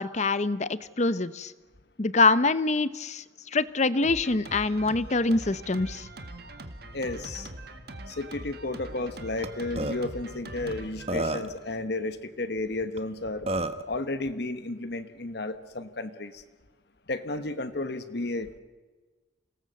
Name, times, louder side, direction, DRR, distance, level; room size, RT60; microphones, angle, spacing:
voice 1, 0.0-1.5 2.0-6.1, left 3 dB, 35° left, 16 dB, 0.8 m, -25 dB
Drum kit, 4.0-11.8, right 1 dB, 55° right, 1.9 m, -43 dB
voice 2, 6.9-7.5 8.1-13.5 13.9-16.4 17.1-18.6, left 2 dB, 60° left, 10 dB, 1.2 m, -33 dB
Burping eructation, 9.4-9.5 9.8-10.0 10.7-10.8 11.1-11.6 13.0-13.1 13.5-13.8, right 1 dB, 30° right, 1.1 m, -29 dB
27.5 x 18.5 x 7.7 m, 1.3 s
head